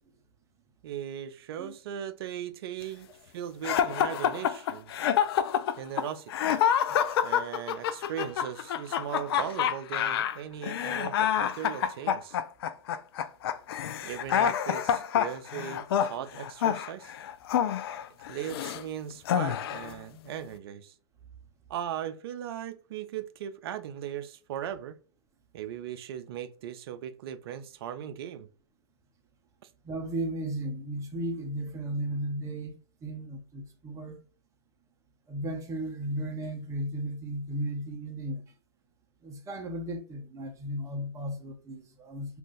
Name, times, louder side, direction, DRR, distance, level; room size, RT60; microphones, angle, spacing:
voice 1, 0.8-3.1 3.3-4.9 5.8-6.6 7.2-12.4 14.0-17.1 18.3-20.9 21.7-25.0 25.5-28.5, right 10 dB, 60° right, 0.4 m, -38 dB
sound 1, 3.6-18.8 19.2-19.9, left 9 dB, 60° left, 0.4 m, -27 dB
voice 2, 6.9-7.4 29.8-34.2 35.3-38.4 39.2-42.4, right 1 dB, 20° right, 0.6 m, -35 dB
2.5 x 2.4 x 3.7 m
hypercardioid pair, 110°, 15 cm